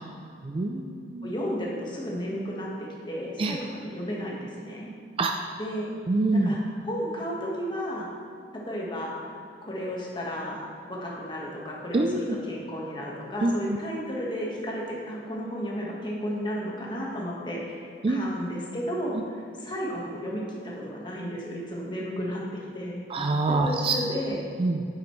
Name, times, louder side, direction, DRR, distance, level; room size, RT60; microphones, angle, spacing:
voice 1, 0.4-1.3 3.4-3.6 5.2-5.3 6.1-6.6 11.9-12.4 13.4-13.8 18.0-18.3 23.1-24.0 24.6-24.8, right 2 dB, 30° right, 3 dB, 0.3 m, -25 dB
voice 2, 1.2-4.9 5.6-5.9 6.3-6.6 6.9-8.1 8.6-9.3 9.6-19.2 19.6-22.4 22.7-23.0 23.6-24.4, equal, 25° left, -3 dB, 1.4 m, -33 dB
9.1 x 7.5 x 3.2 m, 2.4 s
head